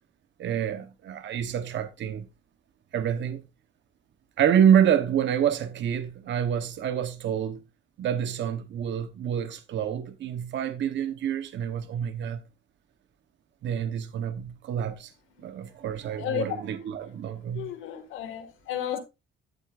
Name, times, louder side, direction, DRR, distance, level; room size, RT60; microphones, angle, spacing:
voice 1, 0.4-2.3 2.9-3.4 4.4-7.6 8.0-12.4 13.6-15.1 15.4-17.7, right 9 dB, 70° right, 1.0 m, -27 dB
voice 2, 17.5-19.0, left 11 dB, 90° left, 1.9 m, -32 dB
11.5 x 8.0 x 2.5 m
cardioid pair, 90°, 20 cm